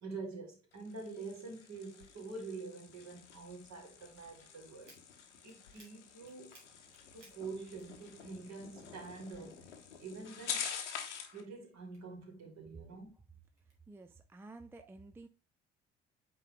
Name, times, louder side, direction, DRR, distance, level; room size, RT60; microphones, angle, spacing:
voice 1, 0.0-4.9 5.4-6.6 7.1-10.7 11.3-13.1, right 3 dB, 45° right, 2.6 m, -46 dB
sound 1, 0.7-11.4, left 7 dB, 75° left, 1.1 m, -47 dB
sound 2, 4.8-8.4 8.7-10.0 10.4-12.5 13.0-13.8, right 2 dB, 80° right, 1.8 m, -64 dB
voice 2, 13.9-15.3, right 2 dB, 5° right, 0.4 m, -52 dB
8.4 x 3.8 x 3.4 m
figure-of-eight pair, 55°, 36 cm